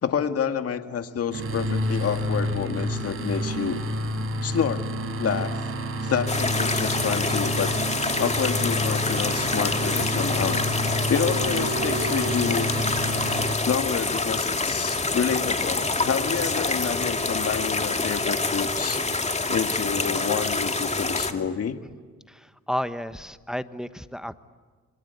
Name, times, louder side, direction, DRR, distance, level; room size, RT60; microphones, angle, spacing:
voice 1, 0.0-3.8 4.4-4.9 5.2-5.6 6.0-7.7 8.2-10.6 10.9-12.7 13.6-19.0 19.5-21.8, left 7 dB, 50° left, 8 dB, 2.0 m, -28 dB
sound 1, 1.3-13.6, equal, 45° right, 5.5 m, -29 dB
sound 2, 6.3-21.3, left 3 dB, 20° left, 2.5 m, -26 dB
sound 3, 11.1-21.5, right 3 dB, 65° right, 6.7 m, -42 dB
voice 2, 22.3-24.3, equal, ahead, 11 dB, 1.2 m, -32 dB
27.0 x 24.5 x 8.3 m, 1.5 s
cardioid pair, 90°, 30 cm